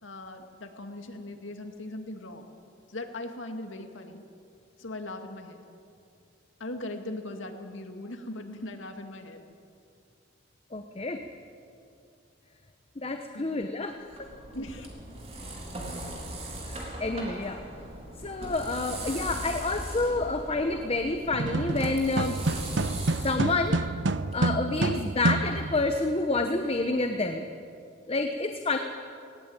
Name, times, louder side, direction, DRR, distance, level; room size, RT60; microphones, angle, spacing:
voice 1, 0.0-2.4 2.9-4.2 4.8-5.6 6.6-9.4 13.3-13.6 14.5-14.9, left 1 dB, 80° left, 5 dB, 2.1 m, -39 dB
voice 2, 10.7-11.2 13.0-14.3 16.7-17.6 18.2-22.4 23.2-23.8 24.3-27.5 28.1-28.8, left 2 dB, 30° left, 6 dB, 0.9 m, -28 dB
sound 1, 14.0-24.4, right 1 dB, 35° right, 3.7 m, -39 dB
sound 2, 21.3-26.0, right 2 dB, 65° right, 0.7 m, -28 dB
19.0 x 18.5 x 9.0 m, 2.5 s
head